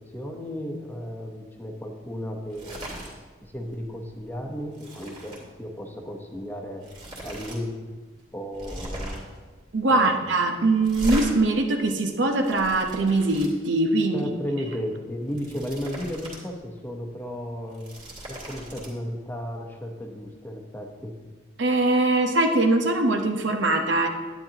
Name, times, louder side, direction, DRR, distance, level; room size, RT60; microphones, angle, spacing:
voice 1, 0.0-2.8 3.4-6.8 7.2-7.9 8.3-9.2 9.9-10.2 14.1-17.9 18.3-21.1, equal, 10° left, 1 dB, 0.9 m, -34 dB
sound 1, 2.5-3.1 3.5-3.7 4.1-5.4 6.4-6.5 6.8-7.6 7.9-8.0 8.5-9.4 10.8-11.3 12.1-13.5 15.1-16.4 16.8-16.9 17.6-18.9, right 1 dB, 25° right, 2.4 m, -37 dB
voice 2, 9.7-14.3 21.6-24.1, right 2 dB, 70° right, 5 dB, 0.9 m, -22 dB
10.5 x 9.9 x 2.9 m, 1.3 s
head